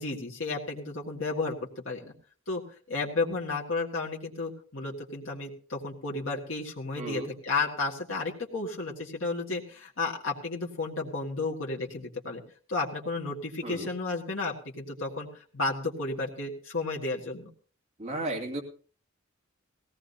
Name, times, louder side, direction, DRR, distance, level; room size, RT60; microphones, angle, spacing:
voice 1, 0.0-1.6 1.8-2.1 2.5-2.6 2.9-12.4 12.7-17.5, left 3 dB, 70° left, -1 dB, 1.9 m, -32 dB
voice 2, 7.0-7.3 13.6-13.9 18.0-18.6, right 2 dB, 30° right, 0 dB, 2.4 m, -34 dB
18.5 x 16.5 x 2.8 m, 0.41 s
head